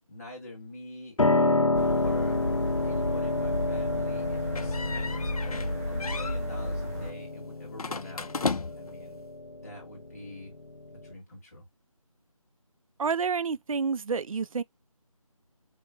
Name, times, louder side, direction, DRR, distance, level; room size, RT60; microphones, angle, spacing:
voice 1, 0.1-1.2 1.6-2.4 2.8-5.2 5.9-8.3 8.8-9.3 9.5-10.6 11.0-11.7, left 2 dB, 25° left, 1.9 m, -45 dB
Piano, 1.2-11.1, left 2 dB, 60° left, 1.1 m, -29 dB
sound 1, 1.7-7.1, left 1 dB, 5° left, 0.6 m, -33 dB
sound 2, 4.5-5.7 6.0-6.4 7.8-9.0, left 4 dB, 80° left, 0.6 m, -34 dB
voice 2, 13.0-14.6, right 5 dB, 65° right, 0.4 m, -29 dB
5.4 x 2.1 x 3.7 m
figure-of-eight pair, 170°, 19 cm